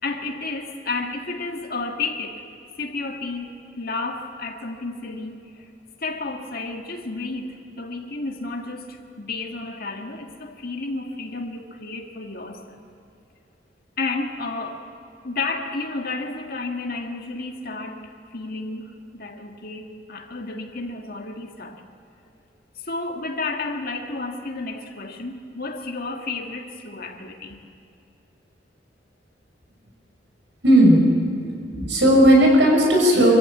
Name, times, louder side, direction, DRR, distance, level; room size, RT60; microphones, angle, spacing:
voice 1, 0.0-2.4 2.8-5.7 6.0-12.8 14.0-14.8 15.2-21.8 22.8-27.6, left 3 dB, 55° left, 3 dB, 1.9 m, -31 dB
voice 2, 30.6-31.1 31.7-33.3, equal, 80° right, 0 dB, 6.2 m, -15 dB
24.5 x 15.0 x 8.4 m, 2.6 s
head